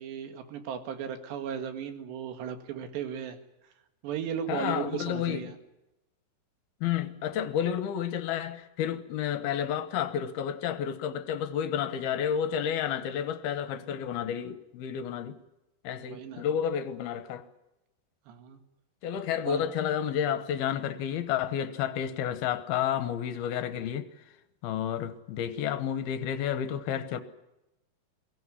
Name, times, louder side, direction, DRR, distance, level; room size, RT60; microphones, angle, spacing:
voice 1, 0.0-3.4 4.0-5.6 16.1-16.5 18.3-18.6 19.5-19.6, right 8 dB, 85° right, 4.0 m, -36 dB
voice 2, 4.5-5.5 6.8-15.4 15.8-17.4 19.0-24.1 24.6-27.2, left 9 dB, 75° left, 2.8 m, -31 dB
22.5 x 17.0 x 9.8 m
omnidirectional pair, 4.8 m